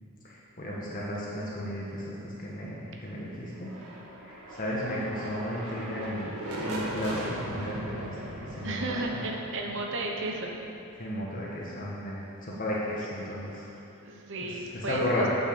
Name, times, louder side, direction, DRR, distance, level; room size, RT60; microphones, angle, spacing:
voice 1, 0.2-3.7 4.2-9.2 11.0-13.7 14.4-15.2, left 1 dB, 40° left, -5 dB, 1.3 m, -34 dB
sound 1, 3.5-11.3, right 1 dB, 90° right, 1.8 m, -39 dB
voice 2, 8.6-10.5 14.0-15.3, right 2 dB, 55° right, 0 dB, 1.1 m, -33 dB
8.6 x 6.4 x 6.9 m, 2.8 s
head